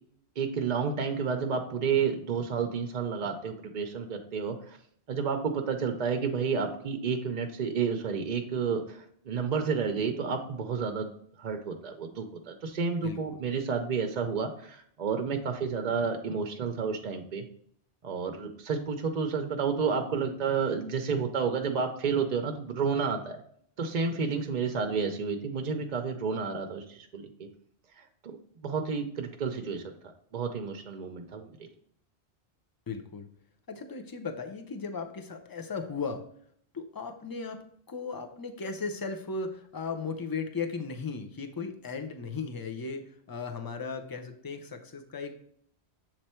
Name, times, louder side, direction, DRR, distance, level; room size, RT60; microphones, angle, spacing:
voice 1, 0.4-4.8 5.1-11.1 11.4-17.4 18.0-23.4 23.8-27.5 28.0-28.1 28.6-29.8 30.3-31.7, right 5 dB, 50° right, 5 dB, 0.6 m, -30 dB
voice 2, 13.0-13.4 32.9-33.3 33.7-36.2 36.7-37.6 37.9-45.4, left 4 dB, 25° left, 6 dB, 0.5 m, -36 dB
7.4 x 3.3 x 4.3 m, 0.64 s
omnidirectional pair, 1.1 m